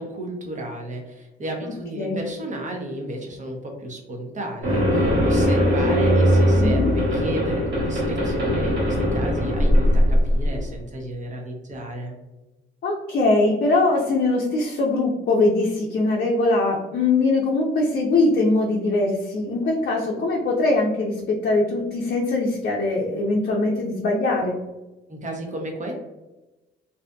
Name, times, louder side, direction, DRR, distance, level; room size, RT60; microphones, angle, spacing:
voice 1, 0.0-12.1 25.1-25.9, right 1 dB, 40° right, 1 dB, 0.8 m, -33 dB
sound 1, 4.6-10.7, equal, 60° right, 1.3 m, -20 dB
voice 2, 6.6-6.9 12.8-24.6, left 2 dB, 50° left, -2 dB, 0.5 m, -22 dB
2.6 x 2.4 x 2.2 m, 1.0 s
cardioid pair, 90°, 20 cm